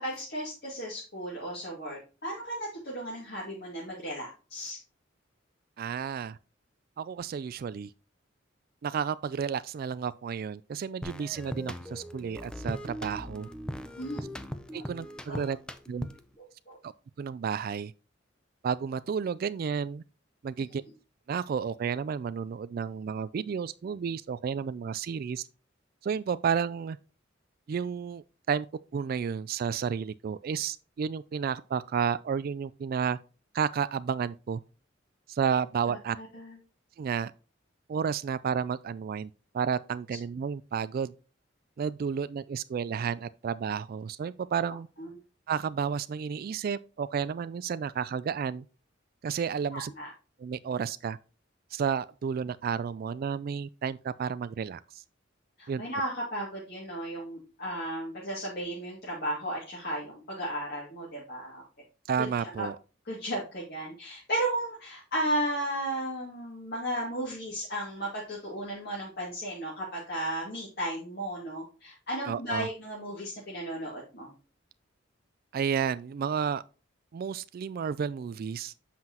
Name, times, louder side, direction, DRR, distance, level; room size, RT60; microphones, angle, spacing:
voice 1, 0.0-4.8 14.0-14.3 14.7-14.8 15.3-15.4 16.7-16.8 35.9-36.6 45.0-45.1 49.7-50.1 55.6-61.6 62.2-62.3 62.6-62.7 63.1-74.3, right 1 dB, 55° left, 2.3 m, -35 dB
voice 2, 5.8-6.4 7.0-7.9 8.8-13.5 14.7-15.6 15.9-16.1 16.8-16.9 17.2-17.9 18.6-20.0 20.4-20.8 21.3-25.5 26.0-27.0 27.7-28.7 28.9-33.2 33.5-34.6 35.3-36.2 37.0-37.3 37.9-41.1 41.8-44.9 45.5-48.6 49.2-49.9 50.4-51.2 51.7-55.0 55.7-55.8 62.1-62.8 72.3-72.7 75.5-76.6 77.1-78.7, right 6 dB, 50° right, 0.3 m, -31 dB
sound 1, 11.0-16.4, equal, 5° left, 0.5 m, -39 dB
7.6 x 5.8 x 2.9 m
head